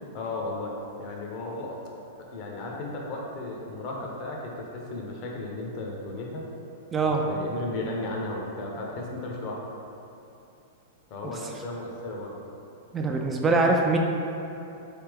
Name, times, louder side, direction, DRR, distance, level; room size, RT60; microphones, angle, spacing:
voice 1, 0.1-0.7 1.0-1.8 2.2-6.4 7.3-9.7 11.1-12.3, left 2 dB, 45° left, -1 dB, 0.6 m, -35 dB
voice 2, 6.9-7.2 12.9-14.0, right 3 dB, 20° right, 1 dB, 0.3 m, -23 dB
3.3 x 2.8 x 3.4 m, 2.8 s
hypercardioid pair, 105°, 0 cm